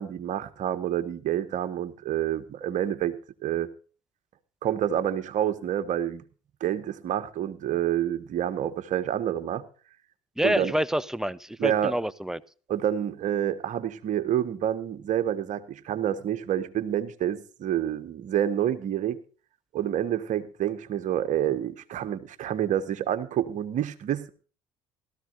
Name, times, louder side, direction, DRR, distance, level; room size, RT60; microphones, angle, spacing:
voice 1, 0.0-3.2 3.4-3.7 4.6-6.2 6.6-9.6 10.4-10.7 11.6-11.9 12.7-19.2 19.7-24.3, right 10 dB, 50° right, 1.5 m, -28 dB
voice 2, 10.4-12.4, equal, 5° right, 0.7 m, -27 dB
17.5 x 13.5 x 2.6 m
hypercardioid pair, 70°, 16 cm